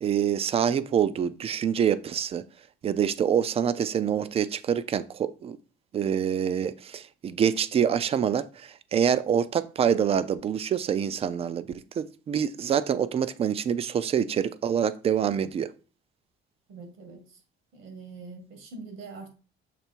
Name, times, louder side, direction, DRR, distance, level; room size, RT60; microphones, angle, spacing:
voice 1, 0.0-2.4 2.8-5.6 5.9-11.6 12.0-15.7, right 8 dB, 30° right, 0.4 m, -26 dB
voice 2, 16.7-17.2 17.7-19.3, right 3 dB, 75° right, 2.2 m, -43 dB
6.8 x 3.3 x 4.5 m
cardioid pair, 160°, 21 cm